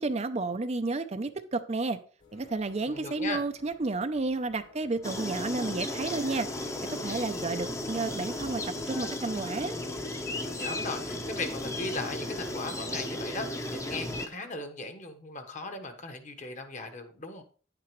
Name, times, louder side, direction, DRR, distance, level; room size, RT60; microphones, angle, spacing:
voice 1, 0.0-2.0 2.3-6.5 7.0-9.8, right 3 dB, 35° right, 10 dB, 0.5 m, -31 dB
sound 1, 2.2-13.0, left 2 dB, 85° left, 2.8 m, -55 dB
voice 2, 2.8-3.4 10.4-17.4, left 3 dB, 40° left, 7 dB, 1.3 m, -38 dB
sound 2, 5.0-14.3, left 1 dB, 15° left, 0.8 m, -35 dB
10.5 x 8.6 x 3.1 m, 0.39 s
head